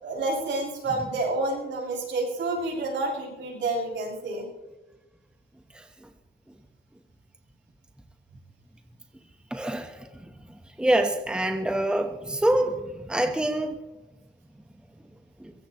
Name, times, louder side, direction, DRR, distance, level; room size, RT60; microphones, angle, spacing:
voice 1, 0.0-4.5, right 2 dB, 70° right, -2 dB, 6.8 m, -29 dB
voice 2, 9.5-10.1 10.8-13.8 15.4-15.5, right 1 dB, 5° right, 6 dB, 1.2 m, -25 dB
23.0 x 17.0 x 3.1 m, 1.1 s
cardioid pair, 90°, 20 cm